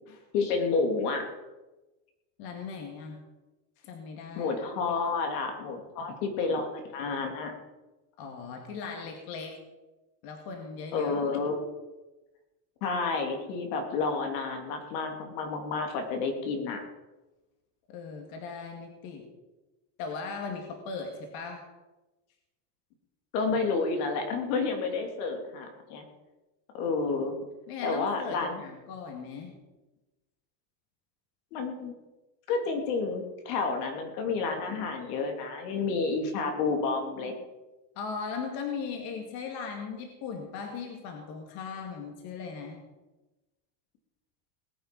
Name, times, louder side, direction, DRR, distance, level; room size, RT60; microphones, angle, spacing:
voice 1, 0.3-1.2 4.4-7.5 10.9-11.6 12.8-16.8 23.3-26.0 26.7-27.3 27.8-28.6 31.5-31.9 32.5-37.3, left 4 dB, 75° left, 3 dB, 3.0 m, -30 dB
voice 2, 2.4-3.3 3.8-4.5 8.2-9.6 10.2-11.1 17.9-19.3 20.0-21.7 27.7-29.6 38.0-42.8, left 5 dB, 45° left, 3 dB, 2.2 m, -38 dB
19.5 x 9.3 x 5.3 m, 1.1 s
cardioid pair, 175°, 49 cm